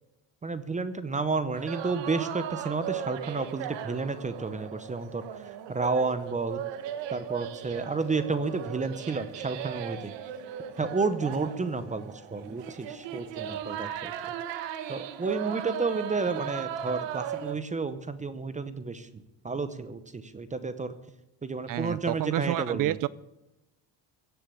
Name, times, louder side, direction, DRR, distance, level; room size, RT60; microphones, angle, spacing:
voice 1, 0.4-6.6 7.1-10.1 10.8-14.1 14.9-20.9 21.4-23.0, right 4 dB, 15° right, 0.7 m, -31 dB
sound 1, 1.5-17.6, right 10 dB, 75° right, 1.4 m, -37 dB
voice 2, 21.7-23.1, right 14 dB, 50° right, 0.4 m, -29 dB
16.5 x 6.9 x 8.4 m
cardioid pair, 135°, 44 cm